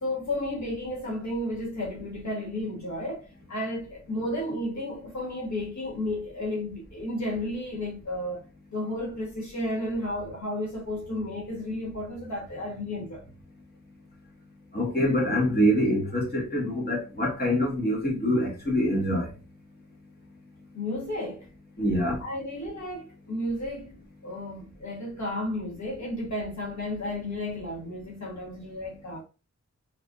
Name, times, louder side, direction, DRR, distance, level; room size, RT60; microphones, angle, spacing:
voice 1, 0.0-8.4 8.7-13.3 20.7-21.5 22.2-29.2, left 1 dB, 70° left, 1.4 m, -33 dB
voice 2, 14.7-19.3 21.8-22.2, equal, 35° left, 1.7 m, -25 dB
3.4 x 3.4 x 2.4 m
wide cardioid pair, 65°, 29 cm